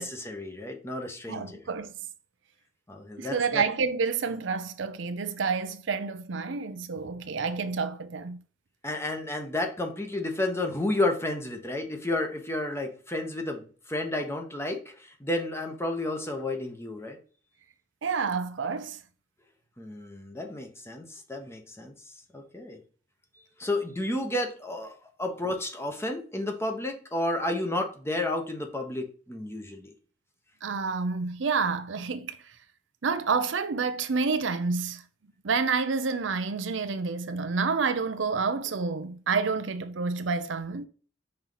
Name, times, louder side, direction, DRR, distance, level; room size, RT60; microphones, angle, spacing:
voice 1, 0.0-1.7 2.9-3.6 8.8-17.2 19.8-22.8 23.6-29.9, left 1 dB, 15° left, 1.0 m, -32 dB
voice 2, 1.3-1.9 3.2-8.4 18.0-19.0 30.6-32.5 33.0-35.0 35.4-40.9, right 5 dB, 75° right, 0.6 m, -29 dB
5.6 x 4.3 x 4.0 m
head